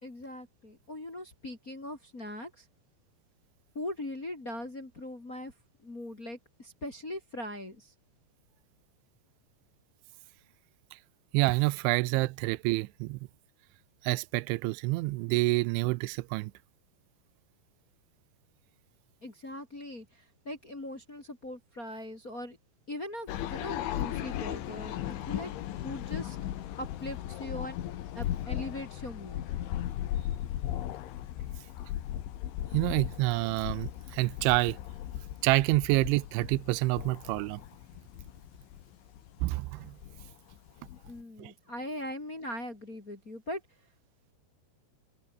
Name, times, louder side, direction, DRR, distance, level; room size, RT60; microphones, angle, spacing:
voice 1, 0.0-2.6 3.7-5.5 5.8-7.9 19.2-22.6 22.9-25.5 25.8-26.4 26.8-27.8 28.1-29.4 41.1-43.6, left 1 dB, 20° left, 3.2 m, -40 dB
voice 2, 11.3-13.2 14.0-16.5 32.7-34.8 35.4-37.6 39.4-40.0 41.4-41.5, right 22 dB, 85° right, 3.1 m, -28 dB
sound 1, 23.3-41.2, left 12 dB, 80° left, 4.3 m, -37 dB
omnidirectional pair, 5.4 m